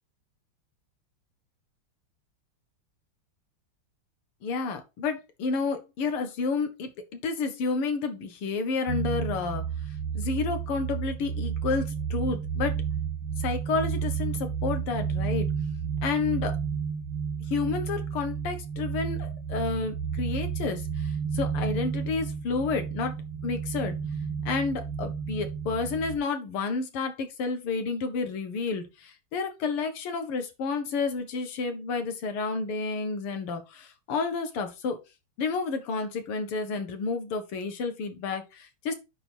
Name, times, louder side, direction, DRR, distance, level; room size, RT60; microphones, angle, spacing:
voice 1, 4.4-9.6 10.1-12.8 13.4-15.5 16.0-16.5 17.5-23.1 23.4-24.0 24.5-35.0 35.4-38.9, left 4 dB, 85° left, 7 dB, 2.1 m, -30 dB
sound 1, 8.9-26.2, right 7 dB, 75° right, 1.9 m, -31 dB
9.9 x 3.6 x 4.4 m, 0.26 s
omnidirectional pair, 2.4 m